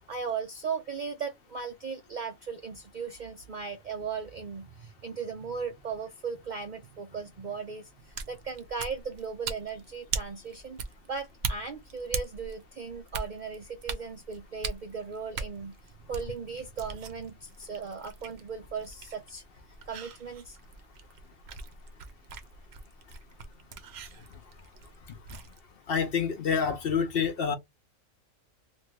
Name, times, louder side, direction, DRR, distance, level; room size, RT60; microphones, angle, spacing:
voice 1, 0.1-10.8 11.1-15.7 16.1-19.4 19.9-20.6, right 5 dB, 85° right, 0.4 m, -37 dB
sound 1, 8.0-25.6, right 5 dB, 60° right, 0.8 m, -41 dB
voice 2, 25.9-27.6, left 6 dB, 55° left, 0.7 m, -27 dB
3.0 x 2.5 x 3.1 m
omnidirectional pair, 1.4 m